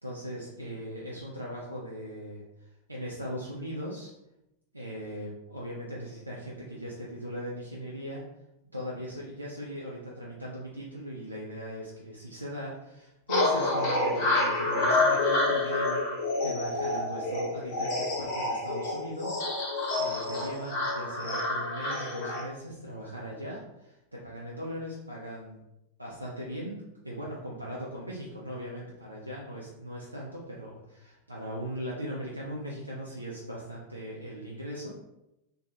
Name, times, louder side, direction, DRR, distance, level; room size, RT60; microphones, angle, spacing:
voice 1, 0.0-2.4 2.9-4.1 4.7-8.2 8.7-19.4 20.0-25.6 26.0-35.0, equal, 85° right, -4 dB, 0.4 m, -39 dB
sound 1, 13.3-22.4, left 2 dB, 45° left, 0.7 m, -28 dB
2.3 x 2.3 x 2.8 m, 0.90 s
figure-of-eight pair, 90°, 0 cm